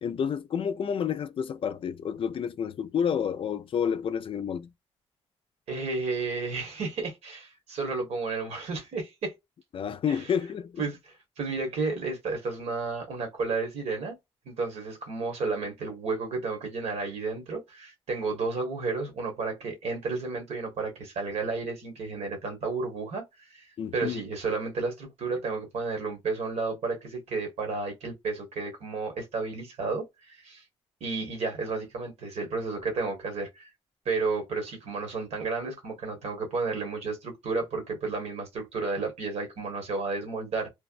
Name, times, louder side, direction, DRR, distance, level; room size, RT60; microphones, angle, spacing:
voice 1, 0.0-4.7 9.7-10.8 23.8-24.2, left 7 dB, 55° left, 0.4 m, -30 dB
voice 2, 5.7-9.3 10.1-10.2 10.8-14.2 14.5-23.2 23.5-23.7 23.9-30.6 31.0-33.7 34.0-40.7, right 4 dB, 80° right, 1.4 m, -32 dB
3.3 x 2.1 x 2.4 m
cardioid pair, 85°, 11 cm